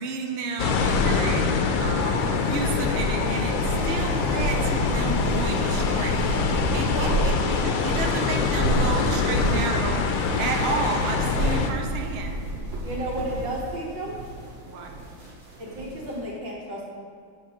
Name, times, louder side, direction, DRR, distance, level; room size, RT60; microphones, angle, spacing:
voice 1, 0.0-6.3 6.7-7.3 7.6-10.1 10.4-12.4 14.6-14.9, right 4 dB, 80° right, 3 dB, 0.5 m, -31 dB
sound 1, 0.6-11.7, left 5 dB, 75° left, 1.4 m, -24 dB
Slow Blanket Shaking, 2.0-16.2, right 2 dB, 45° right, 1.3 m, -31 dB
voice 2, 6.9-7.3 12.8-14.2 15.6-16.8, right 1 dB, 65° right, -5 dB, 2.4 m, -32 dB
8.2 x 3.6 x 6.5 m, 2.1 s
omnidirectional pair, 2.2 m